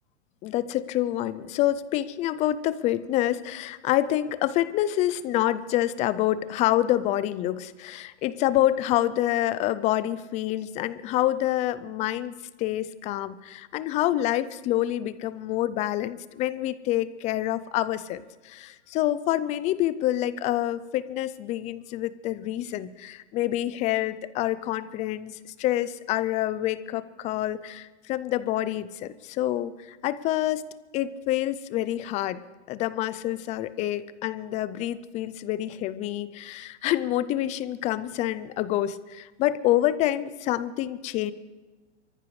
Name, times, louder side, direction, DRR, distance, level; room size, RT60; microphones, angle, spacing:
voice 1, 0.4-12.3 12.6-30.7 30.9-32.4 32.7-41.3, left 13 dB, 20° left, 15 dB, 0.4 m, -27 dB
25.5 x 14.5 x 3.2 m, 1.3 s
hypercardioid pair, 130°, 35 cm